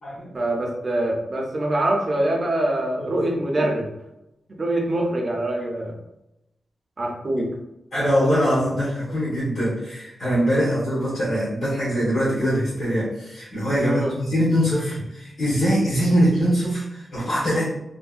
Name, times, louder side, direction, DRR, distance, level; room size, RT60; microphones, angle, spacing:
voice 1, 0.3-3.9 4.5-6.0 7.0-7.5 13.8-14.2, right 1 dB, 35° right, 0 dB, 0.5 m, -24 dB
voice 2, 7.9-17.7, equal, 75° left, -11 dB, 1.3 m, -22 dB
3.1 x 2.1 x 2.4 m, 0.88 s
wide cardioid pair, 170°, 0 cm